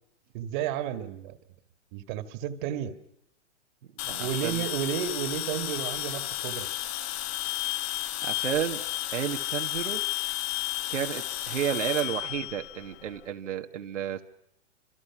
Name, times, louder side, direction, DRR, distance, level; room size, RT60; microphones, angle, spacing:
voice 1, 0.3-1.4 1.9-3.0 4.2-6.7, right 10 dB, 40° right, 10 dB, 2.0 m, -32 dB
sound 1, 4.0-13.2, left 15 dB, 30° left, 1.2 m, -32 dB
voice 2, 4.0-4.7 8.2-8.8 9.1-10.1 10.9-14.2, right 9 dB, 80° right, 4 dB, 1.6 m, -32 dB
29.5 x 27.0 x 6.1 m, 0.77 s
hypercardioid pair, 130°, 36 cm